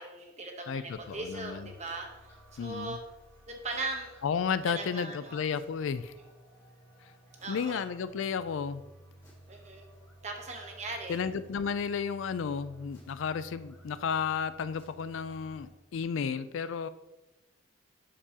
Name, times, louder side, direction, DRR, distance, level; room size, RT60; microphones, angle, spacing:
voice 1, 0.0-2.1 2.6-3.0 3.5-4.1 4.6-5.4 7.4-7.8 9.5-9.9 10.2-11.2, right 3 dB, 35° right, 3 dB, 1.0 m, -39 dB
voice 2, 0.7-1.7 2.6-3.0 4.2-6.1 7.0-7.1 7.5-8.8 11.1-16.9, left 6 dB, 70° left, 13 dB, 0.3 m, -33 dB
sound 1, 0.9-15.7, right 1 dB, 15° left, 1.6 m, -55 dB
7.3 x 6.8 x 2.8 m, 0.99 s
head